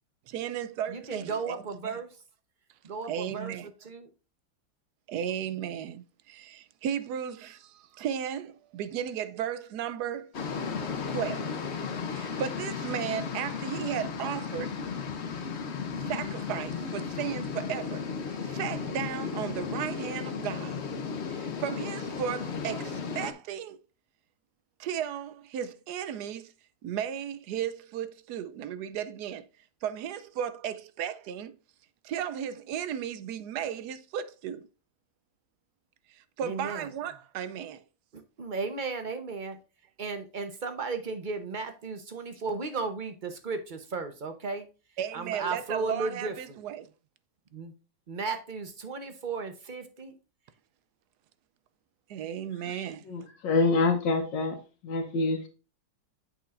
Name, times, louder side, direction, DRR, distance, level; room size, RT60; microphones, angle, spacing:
voice 1, 0.3-1.6 1.8-2.0 3.1-3.7 5.1-10.3 11.1-11.6 12.2-14.8 16.0-20.8 21.3-23.8 24.8-26.5 26.8-29.5 29.8-31.6 32.0-34.7 36.1-37.8 45.0-46.9 52.1-53.0, right 9 dB, 75° right, 1.1 m, -35 dB
voice 2, 0.9-2.1 2.8-3.5 3.8-4.1 36.4-36.8 38.1-39.6 40.0-44.7 45.1-46.6 47.5-47.7 48.1-50.1, right 4 dB, 40° right, 0.7 m, -35 dB
sound 1, 10.3-23.3, left 5 dB, 50° left, 0.9 m, -34 dB
voice 3, 52.7-54.6 54.8-55.5, left 3 dB, 80° left, 1.7 m, -27 dB
8.0 x 6.2 x 2.4 m
omnidirectional pair, 2.0 m